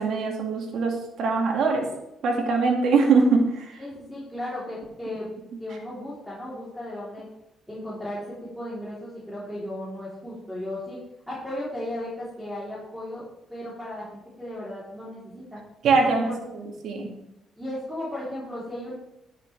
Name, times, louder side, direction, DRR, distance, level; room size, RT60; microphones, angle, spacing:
voice 1, 0.0-1.9 2.2-3.8 15.8-17.1, right 4 dB, 75° right, 1 dB, 2.1 m, -22 dB
voice 2, 3.8-5.3 5.6-7.2 7.7-11.0 11.3-13.2 13.5-15.6 16.0-16.3 17.6-18.9, left 1 dB, ahead, -8 dB, 3.5 m, -35 dB
10.5 x 8.8 x 3.4 m, 0.86 s
cardioid pair, 90°, 0 cm